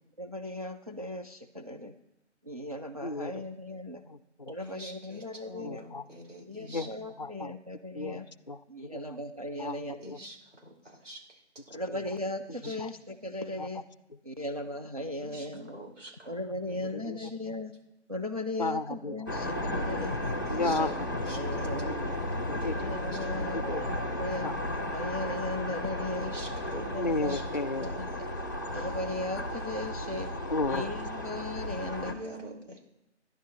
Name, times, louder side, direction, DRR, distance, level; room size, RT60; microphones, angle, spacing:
voice 1, 0.2-1.9 2.5-4.0 4.5-5.9 6.5-8.2 8.7-10.0 11.7-13.8 14.3-15.8 16.3-17.7 18.1-18.8 19.1-20.2 20.6-20.9 21.3-22.1 22.7-24.5 24.9-26.3 26.8-27.3 27.8-27.9 28.7-30.3 30.7-31.0 31.2-32.1, left 1 dB, 30° right, 4 dB, 0.5 m, -37 dB
voice 2, 3.0-3.5 4.1-4.6 5.6-6.2 6.6-6.9 7.2-7.5 7.9-9.2 9.5-10.2 11.9-12.2 12.5-12.9 13.6-13.8 14.1-14.2 16.4-17.5 18.6-19.3 20.5-21.1 21.6-22.0 22.4-22.9 23.4-24.0 24.4-24.6 26.9-27.9 30.5-30.9, left 2 dB, 40° left, 15 dB, 0.5 m, -35 dB
voice 3, 4.6-6.9 9.6-10.4 10.6-11.2 12.6-12.7 15.1-15.5 15.7-16.4 17.2-17.3 20.0-20.8 21.1-21.7 22.6-22.7 26.2-26.9 27.3-27.4 32.0-32.8, right 1 dB, 80° right, -1 dB, 4.9 m, -45 dB
sound 1, 19.3-32.1, left 1 dB, 15° left, 0.8 m, -34 dB
27.5 x 11.0 x 3.1 m, 0.91 s
figure-of-eight pair, 170°, 36 cm